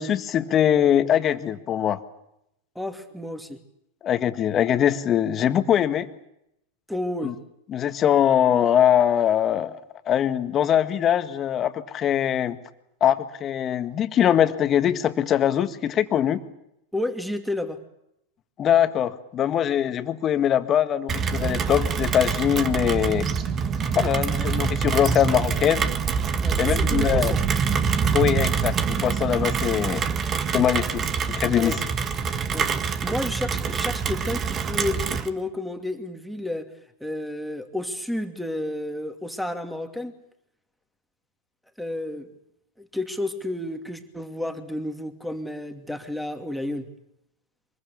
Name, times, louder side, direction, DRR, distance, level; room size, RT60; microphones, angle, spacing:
voice 1, 0.0-2.0 4.0-6.1 7.2-7.3 7.7-9.8 10.0-12.6 13.0-16.4 18.6-23.3 23.9-25.8 26.6-27.3 28.1-30.1 30.5-31.0 31.3-31.8, left 10 dB, 35° left, 10 dB, 1.8 m, -22 dB
voice 2, 2.7-3.6 6.9-7.3 16.9-17.8 24.4-24.5 26.4-27.4 31.6-31.8 32.5-32.7 33.0-36.7 37.0-40.1 41.8-42.3 42.8-46.9, left 1 dB, ahead, 7 dB, 2.7 m, -31 dB
Rain, 21.1-35.3, right 6 dB, 30° right, 1.7 m, -25 dB
24.0 x 22.0 x 8.5 m, 0.80 s
hypercardioid pair, 100°, 0 cm